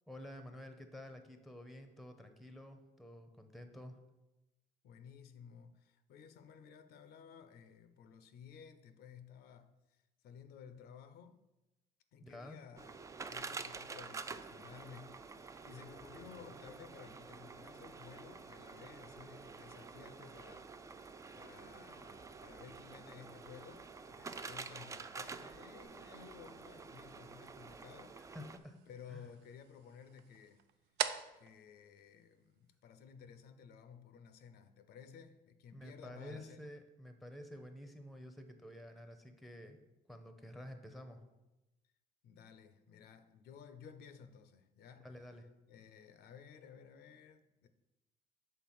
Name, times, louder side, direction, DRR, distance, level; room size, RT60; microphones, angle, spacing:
voice 1, 0.1-4.0 12.2-12.6 28.3-28.8 29.1-29.3 35.7-39.8 40.1-41.2 45.0-45.4, left 1 dB, ahead, 0.7 m, -50 dB
voice 2, 4.8-11.4 12.1-21.0 21.3-28.4 28.9-30.6 31.4-36.6 42.2-45.1 45.7-47.7, left 7 dB, 70° left, 0.6 m, -56 dB
sound 1, 12.8-28.6, right 4 dB, 20° right, 0.3 m, -49 dB
sound 2, 15.9-25.9, right 3 dB, 50° right, 1.2 m, -65 dB
sound 3, 19.3-32.9, right 11 dB, 85° right, 0.4 m, -49 dB
6.4 x 3.3 x 5.9 m
cardioid pair, 110°, 17 cm